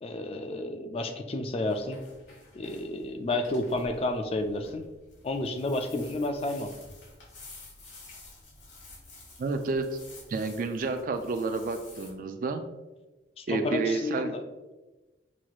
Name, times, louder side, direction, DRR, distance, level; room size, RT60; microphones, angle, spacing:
voice 1, 0.0-2.0 2.5-4.8 5.2-6.7 13.4-14.4, left 2 dB, 30° left, 7 dB, 0.3 m, -31 dB
sound 1, 1.6-12.1, left 2 dB, 75° left, 1.4 m, -51 dB
voice 2, 9.4-10.0 10.3-12.6 13.5-14.3, right 3 dB, 50° right, 8 dB, 0.3 m, -30 dB
6.0 x 2.9 x 2.3 m, 1.1 s
head